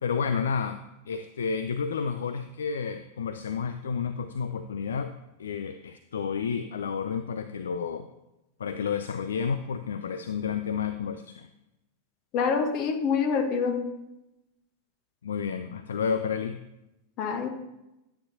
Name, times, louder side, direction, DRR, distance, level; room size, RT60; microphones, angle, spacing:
voice 1, 0.0-5.1 5.4-8.1 8.6-11.5 15.2-16.6, left 6 dB, 65° left, 10 dB, 0.4 m, -31 dB
voice 2, 12.3-13.9 17.2-17.5, left 5 dB, 40° left, 5 dB, 1.1 m, -26 dB
13.0 x 8.9 x 2.8 m, 0.93 s
figure-of-eight pair, 90°, 0 cm